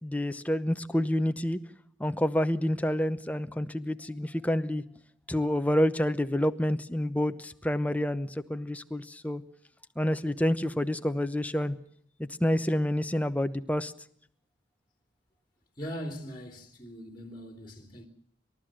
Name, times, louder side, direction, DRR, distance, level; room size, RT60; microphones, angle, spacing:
voice 1, 0.0-1.6 2.0-4.8 5.3-9.4 10.0-11.7 12.2-13.9, left 1 dB, 10° left, 0.8 m, -28 dB
voice 2, 15.8-18.1, equal, 25° left, 3.2 m, -40 dB
29.5 x 13.5 x 7.6 m
head